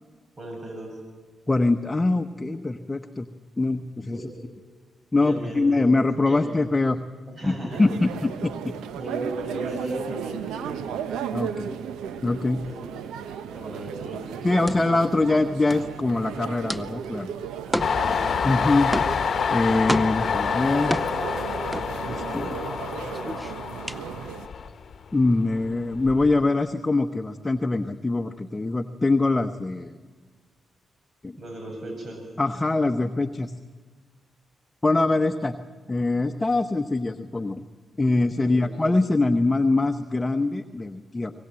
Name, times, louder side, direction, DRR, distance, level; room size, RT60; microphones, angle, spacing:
voice 1, 0.4-1.0 4.1-4.2 5.2-5.9 6.2-6.4 7.3-8.1 9.0-10.9 12.6-12.8 13.5-14.5 17.6-18.1 31.3-32.2 38.3-38.7, right 1 dB, 50° right, 2 dB, 7.7 m, -36 dB
voice 2, 1.5-3.3 3.6-4.3 5.1-7.0 7.4-8.7 11.3-11.8 12.2-12.6 14.4-17.3 18.4-18.9 19.5-20.9 22.1-22.6 25.1-29.9 31.2-31.4 32.4-33.5 34.8-35.5 35.9-37.7 38.0-41.3, left 2 dB, 25° left, 7 dB, 1.0 m, -23 dB
sound 1, 7.7-24.5, right 8 dB, 80° right, 0.9 m, -35 dB
sound 2, 14.7-22.5 22.8-24.7, equal, 5° right, 0.8 m, -32 dB
Train, 17.8-25.2 25.6-26.4, left 6 dB, 60° left, 1.1 m, -27 dB
23.5 x 20.0 x 7.7 m, 1.5 s
hypercardioid pair, 40°, 0 cm